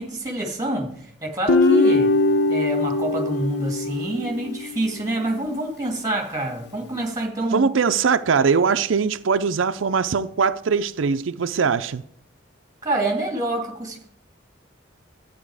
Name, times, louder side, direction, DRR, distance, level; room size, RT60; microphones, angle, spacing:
voice 1, 0.0-2.2 2.5-7.7 12.8-14.1, right 1 dB, 20° right, 2.3 m, -27 dB
Guitar, 1.5-4.8, left 2 dB, 60° left, 0.6 m, -21 dB
voice 2, 7.5-12.0, right 5 dB, 90° right, 0.5 m, -21 dB
12.5 x 8.7 x 4.8 m
head